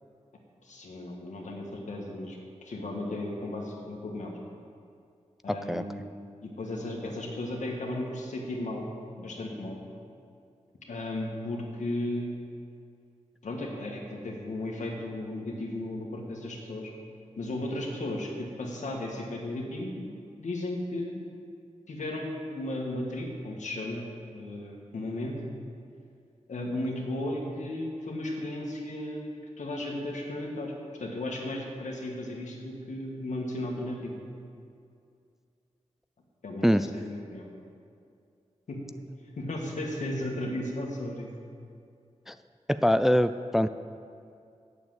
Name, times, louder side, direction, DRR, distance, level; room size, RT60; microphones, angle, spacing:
voice 1, 0.6-4.3 5.4-6.0 6.4-8.9 9.2-9.8 10.9-12.3 13.4-16.9 17.4-20.1 20.4-21.2 21.9-24.1 24.3-25.3 26.5-30.7 31.0-34.1 36.4-37.5 38.7-38.8 39.4-41.3, left 1 dB, 80° left, 0 dB, 1.6 m, -35 dB
voice 2, 5.5-5.8 36.6-36.9 42.3-42.4 42.7-43.7, equal, 5° right, 11 dB, 0.3 m, -24 dB
8.4 x 6.9 x 7.8 m, 2.4 s
cardioid pair, 55°, 12 cm